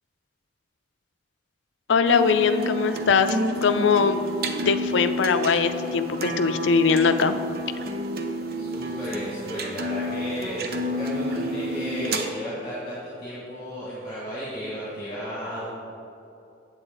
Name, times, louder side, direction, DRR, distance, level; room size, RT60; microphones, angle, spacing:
voice 1, 1.9-4.3 4.7-7.4, left 5 dB, 75° left, 10 dB, 0.4 m, -21 dB
sound 1, 2.0-12.3, equal, 55° right, 0.6 m, -30 dB
voice 2, 8.6-15.8, equal, 30° left, -9 dB, 1.9 m, -34 dB
8.1 x 8.0 x 3.8 m, 2.7 s
head